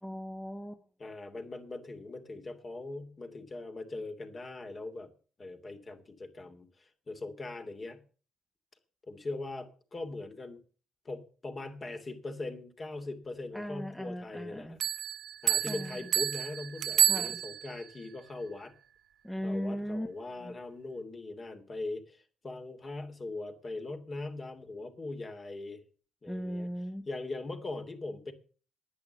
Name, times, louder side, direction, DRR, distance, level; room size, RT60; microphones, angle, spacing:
voice 1, 0.0-0.8 13.5-14.8 15.7-16.0 17.0-17.4 19.2-20.1 20.4-20.5 26.3-27.0, equal, 5° left, 5 dB, 1.3 m, -37 dB
voice 2, 1.0-5.1 5.4-8.0 9.1-10.6 11.0-14.8 15.4-18.7 19.4-25.8 26.2-26.7 27.1-28.3, left 2 dB, 35° left, 6 dB, 2.9 m, -41 dB
sound 1, 14.8-17.8, right 10 dB, 75° right, 0.7 m, -29 dB
10.5 x 9.8 x 8.0 m, 0.39 s
cardioid pair, 90°, 0 cm